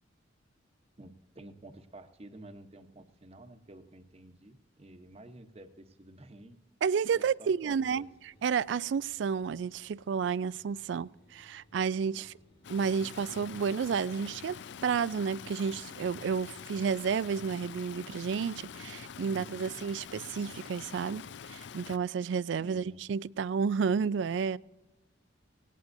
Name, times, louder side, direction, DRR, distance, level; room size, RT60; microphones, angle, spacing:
voice 1, 1.0-6.6 7.1-8.1 12.1-12.4 19.2-19.8 22.6-23.0, right 1 dB, 30° right, 0.9 m, -51 dB
voice 2, 6.8-8.1 8.4-12.3 12.7-14.6 14.8-21.2 21.5-24.6, right 6 dB, 65° right, 0.3 m, -31 dB
sound 1, 7.7-13.9, left 1 dB, 85° left, 3.7 m, -65 dB
Stream, 12.6-22.0, left 7 dB, 65° left, 0.4 m, -45 dB
18.0 x 17.5 x 2.6 m
head